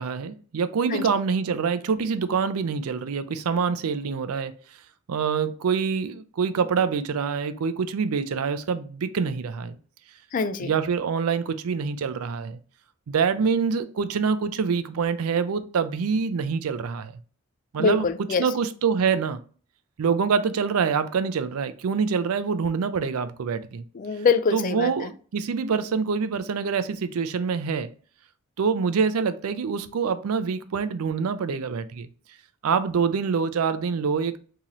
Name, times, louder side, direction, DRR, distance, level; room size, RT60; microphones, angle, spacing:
voice 1, 0.0-4.6 5.1-9.8 10.6-12.6 13.1-17.1 17.7-18.1 18.4-19.4 20.0-23.8 24.5-27.9 28.6-32.1 32.6-34.4, right 5 dB, 85° right, 0.4 m, -25 dB
voice 2, 10.3-10.7 17.8-18.5 23.9-25.1, left 4 dB, 40° left, 0.3 m, -24 dB
3.0 x 2.8 x 3.7 m
head